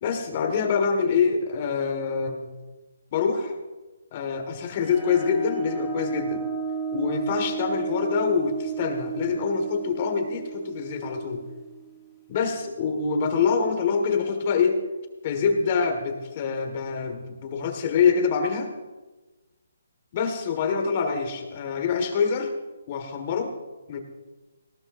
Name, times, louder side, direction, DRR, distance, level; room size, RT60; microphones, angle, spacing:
voice 1, 0.0-2.5 3.1-3.5 4.1-6.4 6.9-11.4 12.3-14.8 15.2-18.7 20.1-22.5 22.9-23.5 23.9-24.0, left 5 dB, 30° left, 5 dB, 1.6 m, -25 dB
sound 1, 4.8-12.3, right 5 dB, 15° left, 1.1 m, -33 dB
19.0 x 17.5 x 2.6 m, 1.2 s
hypercardioid pair, 165°, 0 cm